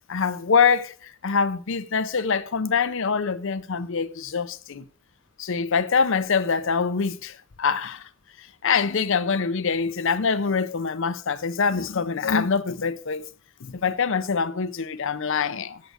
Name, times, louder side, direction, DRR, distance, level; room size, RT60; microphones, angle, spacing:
voice 1, 0.1-4.8 5.4-8.1 8.4-13.3 13.6-15.8, left 5 dB, 60° left, 0.6 m, -24 dB
8.1 x 7.7 x 6.4 m
head